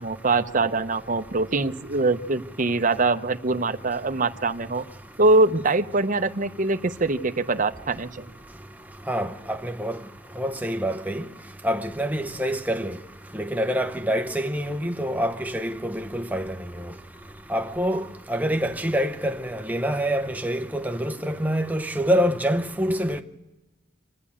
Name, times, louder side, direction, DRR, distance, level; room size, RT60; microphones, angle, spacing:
voice 1, 0.0-4.8 5.2-8.3, right 3 dB, 40° right, 0.8 m, -23 dB
voice 2, 9.1-10.0 10.4-11.2 11.6-13.0 13.3-16.5 17.5-18.0 18.3-23.2, equal, 10° right, 0.8 m, -26 dB
25.5 x 13.0 x 8.6 m
head